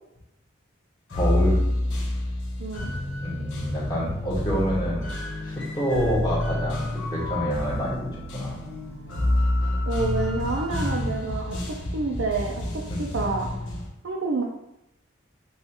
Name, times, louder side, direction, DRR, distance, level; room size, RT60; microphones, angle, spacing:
sound 1, 1.1-13.9, left 1 dB, 70° left, 1.2 m, -28 dB
voice 1, 1.1-1.6 3.2-5.1 5.4-6.8 7.1-8.1 8.3-8.5 12.9-13.0, equal, 20° left, -6 dB, 1.4 m, -27 dB
voice 2, 2.6-2.9 9.9-13.5 14.0-14.4, right 3 dB, 75° right, -1 dB, 0.5 m, -28 dB
7.1 x 2.4 x 2.9 m, 0.86 s
head